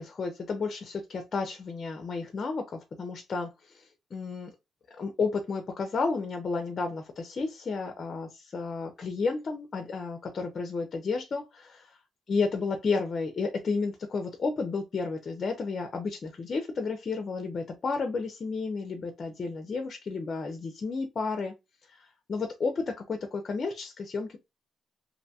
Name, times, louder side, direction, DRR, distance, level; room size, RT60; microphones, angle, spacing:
voice 1, 0.0-4.5 5.0-11.9 12.3-21.5 21.9-24.4, left 4 dB, 45° left, 0.5 m, -32 dB
2.6 x 2.2 x 2.7 m
cardioid pair, 90°, 0 cm